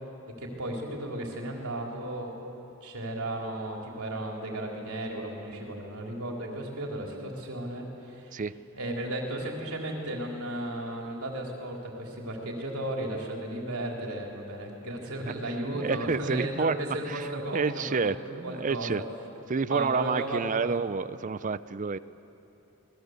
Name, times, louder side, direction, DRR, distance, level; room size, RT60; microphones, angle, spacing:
voice 1, 0.4-2.4 2.8-8.4 8.7-19.0 19.7-20.7, right 1 dB, 75° right, 0 dB, 4.0 m, -35 dB
voice 2, 15.7-16.8 17.1-19.0 19.5-22.0, right 4 dB, 35° right, 16 dB, 0.5 m, -29 dB
26.5 x 20.0 x 8.1 m, 3.0 s
head